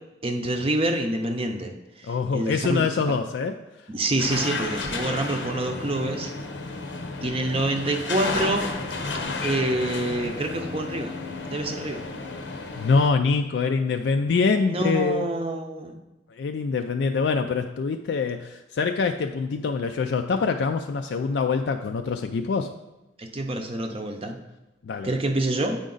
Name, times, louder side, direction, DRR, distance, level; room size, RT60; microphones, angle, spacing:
voice 1, 0.2-2.9 3.9-6.3 7.2-8.7 9.4-11.1 11.5-12.0 14.7-16.0 23.2-24.4 25.0-25.8, right 1 dB, 30° right, 4 dB, 0.6 m, -27 dB
voice 2, 2.0-3.6 12.8-15.3 16.3-22.7 24.8-25.1, left 4 dB, 70° left, 6 dB, 0.3 m, -24 dB
sound 1, 4.2-13.1, left 3 dB, 90° left, 0.8 m, -32 dB
8.4 x 5.0 x 3.9 m, 0.98 s
head